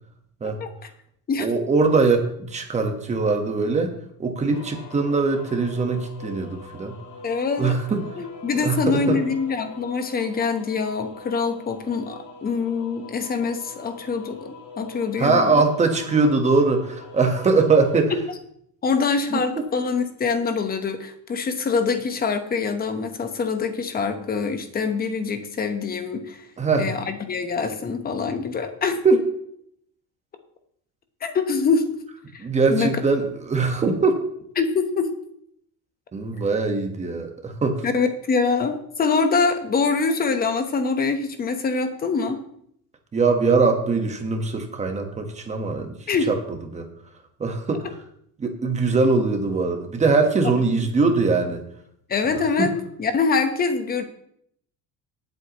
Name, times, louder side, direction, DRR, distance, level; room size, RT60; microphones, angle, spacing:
voice 1, 1.4-6.9 7.6-8.1 8.6-9.2 15.2-18.1 19.3-19.4 26.6-26.9 29.0-29.3 32.4-34.2 36.1-37.8 43.1-45.9 46.3-46.4 46.7-46.9 47.4-47.9 48.4-51.6 52.2-52.3 52.6-52.7, right 4 dB, 20° right, 5 dB, 1.4 m, -21 dB
sound 1, 4.5-18.0, left 2 dB, 55° left, 2.8 m, -43 dB
voice 2, 7.2-7.8 8.2-15.7 18.8-26.5 26.8-29.0 31.2-31.9 32.3-33.0 34.6-35.1 37.8-42.4 46.1-46.3 50.7-50.9 52.1-54.0, left 4 dB, 25° left, 8 dB, 1.1 m, -24 dB
18.5 x 8.1 x 3.1 m, 0.69 s
cardioid pair, 165°, 37 cm